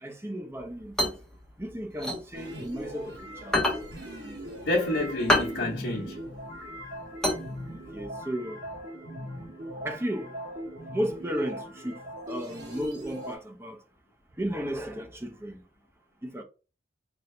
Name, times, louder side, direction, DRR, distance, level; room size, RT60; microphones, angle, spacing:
voice 1, 0.0-1.1 1.6-3.7 7.7-8.6 9.8-10.4 10.9-13.8 14.4-15.6 16.2-16.4, equal, 15° right, 0.7 m, -34 dB
sound 1, 0.6-3.0 3.4-8.0, left 1 dB, 5° left, 1.0 m, -29 dB
sound 2, 2.3-13.4, equal, 80° right, 1.5 m, -40 dB
voice 2, 4.6-6.2, left 1 dB, 85° left, 1.0 m, -28 dB
4.3 x 2.7 x 3.2 m
head